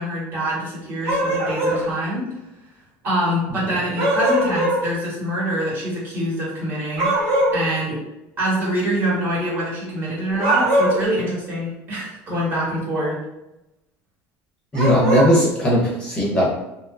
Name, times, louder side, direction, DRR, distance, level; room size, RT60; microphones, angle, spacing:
voice 1, 0.0-2.3 3.0-8.0 8.4-13.2, equal, 35° right, -5 dB, 1.1 m, -25 dB
sound 1, 1.0-1.8 4.0-4.8 7.0-7.6 10.3-11.1 14.7-15.3, right 1 dB, 60° right, 0.9 m, -20 dB
voice 2, 14.7-16.5, equal, 15° left, -5 dB, 0.6 m, -18 dB
2.7 x 2.3 x 2.4 m, 0.92 s
cardioid pair, 150°, 6 cm